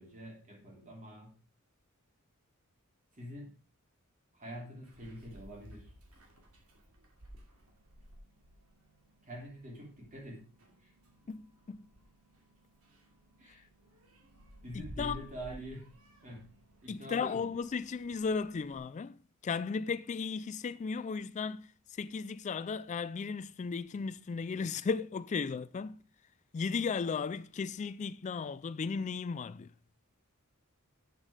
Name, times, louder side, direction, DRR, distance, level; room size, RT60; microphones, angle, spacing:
voice 1, 0.0-1.3 3.1-3.5 4.3-5.9 9.2-10.4 10.8-10.9 13.4-13.6 14.6-15.9 16.2-16.5 16.8-17.5, equal, 35° right, 3.4 m, -45 dB
Meow, 4.8-18.8, equal, 75° right, 2.7 m, -55 dB
voice 2, 11.3-11.9 14.7-15.2 16.9-26.0 26.5-29.7, left 5 dB, 35° left, 0.3 m, -35 dB
8.2 x 7.5 x 4.9 m
head